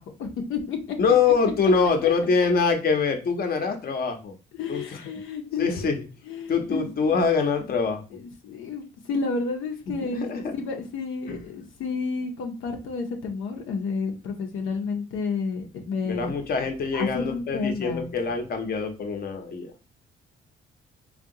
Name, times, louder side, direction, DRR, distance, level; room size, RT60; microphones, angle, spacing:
voice 1, 0.0-1.0 4.5-5.8 6.2-7.0 8.1-16.3 16.9-18.1, left 4 dB, 80° left, 2 dB, 0.6 m, -31 dB
voice 2, 1.0-4.3 4.7-4.8 5.6-5.9 6.5-8.0 10.1-10.5 11.3-11.4 16.0-19.7, left 5 dB, 50° left, 5 dB, 0.7 m, -24 dB
3.6 x 2.3 x 2.6 m, 0.32 s
cardioid pair, 90°, 20 cm